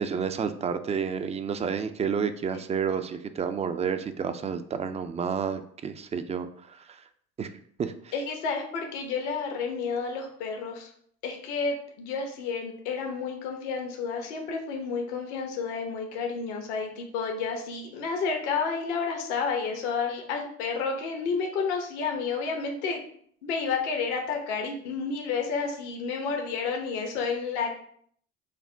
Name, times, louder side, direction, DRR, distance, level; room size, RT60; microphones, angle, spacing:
voice 1, 0.0-6.8 7.4-7.5 7.8-8.1, right 6 dB, 20° right, 9 dB, 0.3 m, -30 dB
voice 2, 8.1-10.9 11.2-23.0 23.4-27.7, left 5 dB, 70° left, 2 dB, 1.0 m, -30 dB
5.7 x 2.1 x 4.3 m, 0.63 s
hypercardioid pair, 75°, 36 cm